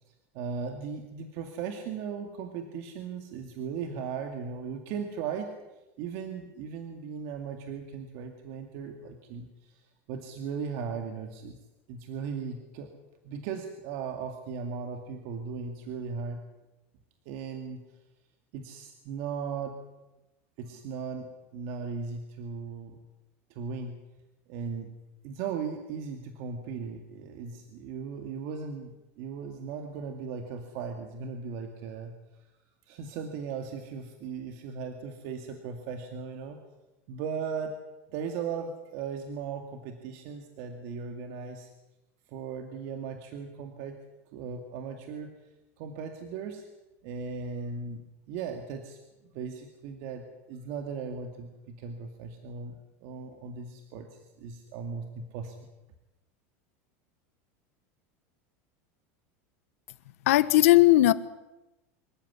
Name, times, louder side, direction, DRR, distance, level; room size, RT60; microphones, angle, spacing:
voice 1, 0.3-5.5 6.0-11.6 11.9-13.0 13.2-16.4 17.3-17.8 18.5-19.8 20.6-23.0 23.5-24.0 24.5-24.9 25.2-32.1 32.9-36.6 37.1-37.7 38.1-41.7 42.3-44.0 44.3-45.3 45.8-46.7 47.0-48.0 48.3-49.0 49.2-54.1 54.4-55.7, right 6 dB, 45° right, 5 dB, 2.2 m, -37 dB
voice 2, 60.3-61.1, left 16 dB, 85° left, 14 dB, 1.4 m, -18 dB
25.5 x 14.5 x 9.7 m, 1.0 s
supercardioid pair, 175°, 7 cm